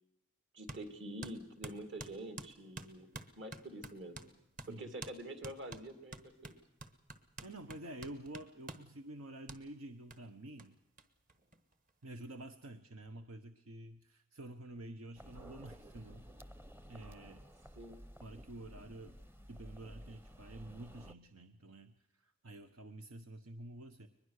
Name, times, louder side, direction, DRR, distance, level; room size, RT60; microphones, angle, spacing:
voice 1, 0.5-4.2 4.7-6.5 17.8-18.0, right 1 dB, 55° right, 8 dB, 2.6 m, -46 dB
sound 1, 0.7-0.8 1.2-4.3 4.6-4.7 5.0-5.2 5.4-8.9 9.5-9.6 10.1-10.2 10.6-10.7 11.0-11.1 11.3-12.0, right 2 dB, 40° right, 1.4 m, -48 dB
voice 2, 7.4-10.8 12.0-16.3 16.9-17.4 18.2-19.2 19.5-24.1, right 1 dB, 85° right, 8 dB, 1.1 m, -49 dB
sound 2, 15.2-21.1, equal, 10° right, 0.7 m, -54 dB
22.5 x 21.0 x 6.6 m, 0.84 s
head